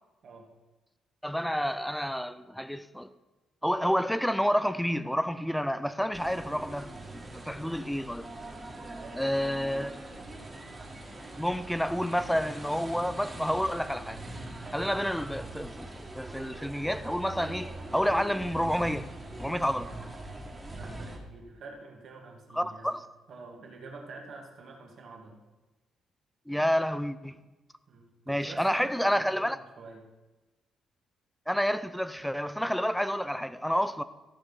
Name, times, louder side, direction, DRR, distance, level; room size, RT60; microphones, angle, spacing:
voice 1, 0.2-0.6 8.9-9.6 20.7-22.9 23.3-25.4 27.9-30.1, right 3 dB, 60° right, 2.1 m, -48 dB
voice 2, 1.2-3.1 3.6-8.3 9.2-10.0 11.4-14.2 14.7-19.1 19.4-19.9 22.5-23.0 26.5-27.3 28.3-29.6 31.5-34.0, equal, ahead, 0.5 m, -29 dB
sound 1, 6.1-21.2, right 1 dB, 20° right, 2.0 m, -42 dB
14.5 x 5.1 x 5.4 m
cardioid pair, 90°, 0 cm